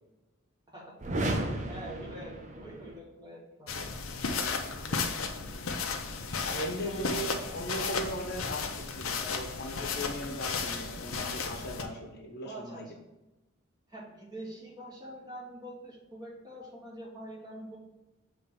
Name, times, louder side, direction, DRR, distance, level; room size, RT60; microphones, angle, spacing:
sound 1, 1.0-3.0, right 1 dB, 35° right, 0.7 m, -33 dB
voice 1, 1.2-3.9 4.5-5.2 6.5-7.6 12.4-12.9 13.9-17.8, right 1 dB, 20° right, -3 dB, 1.3 m, -46 dB
sound 2, 3.7-11.8, left 4 dB, 80° left, 0.7 m, -34 dB
voice 2, 6.4-12.8, equal, 50° left, 1 dB, 1.0 m, -38 dB
6.9 x 3.3 x 5.4 m, 1.0 s
head